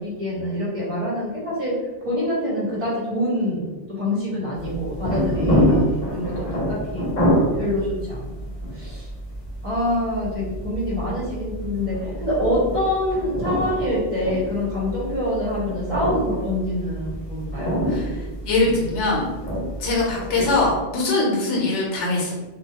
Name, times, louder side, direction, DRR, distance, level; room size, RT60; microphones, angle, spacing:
voice 1, 0.0-1.7 2.0-7.1 7.5-8.3 8.7-9.1 9.6-17.9, left 1 dB, 30° right, -7 dB, 0.9 m, -26 dB
sound 1, 4.6-20.8, equal, 40° left, 0.9 m, -26 dB
voice 2, 18.4-19.3 19.8-22.3, left 2 dB, 70° left, -3 dB, 0.9 m, -22 dB
2.3 x 2.3 x 2.7 m, 1.2 s
omnidirectional pair, 1.2 m